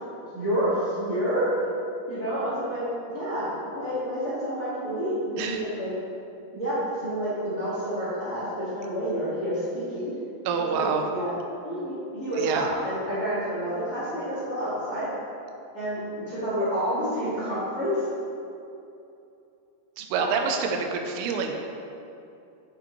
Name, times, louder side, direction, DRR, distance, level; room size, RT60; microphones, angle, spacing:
voice 1, 0.3-1.5 2.1-2.9 3.1-5.9 6.5-10.1 10.6-11.3 11.6-15.1 15.7-18.0 20.1-20.3, equal, 35° left, -11 dB, 1.6 m, -29 dB
voice 2, 10.5-11.1 12.4-12.6 20.0-21.5, right 5 dB, 85° right, 3 dB, 2.6 m, -27 dB
8.7 x 6.9 x 3.1 m, 2.7 s
omnidirectional pair, 4.6 m